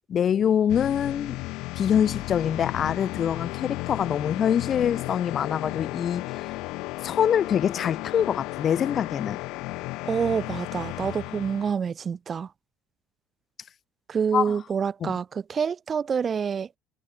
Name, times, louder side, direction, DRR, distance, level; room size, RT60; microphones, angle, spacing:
voice 1, 0.1-1.4 1.8-6.5 7.0-9.4 14.3-14.5 15.0-15.1, left 8 dB, 40° left, 1.9 m, -25 dB
sound 1, 0.7-11.7, left 21 dB, 75° left, 1.2 m, -34 dB
voice 2, 10.0-12.5 14.1-16.7, right 6 dB, 30° right, 1.3 m, -27 dB
cardioid pair, 110°, 0 cm